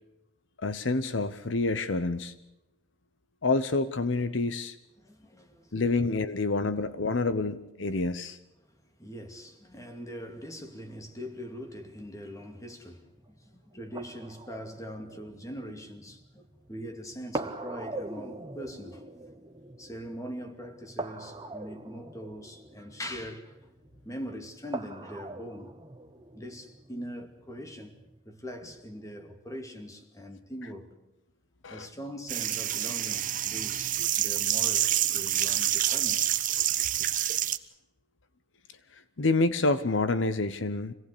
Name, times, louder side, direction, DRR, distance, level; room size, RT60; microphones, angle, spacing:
voice 1, 0.6-2.3 3.4-4.8 5.7-8.4 31.6-31.9 38.9-40.9, left 3 dB, 75° left, 0.9 m, -28 dB
voice 2, 5.0-5.7 6.7-6.9 8.6-8.7 9.0-13.1 13.4-19.1 19.8-23.6 24.0-25.7 26.3-28.0 28.3-31.1 31.7-36.9, equal, 15° left, 2.5 m, -42 dB
sound 1, 10.6-28.2, right 2 dB, 25° right, 1.3 m, -43 dB
sound 2, 32.3-37.6, right 12 dB, 45° right, 1.0 m, -27 dB
26.0 x 18.0 x 8.4 m
head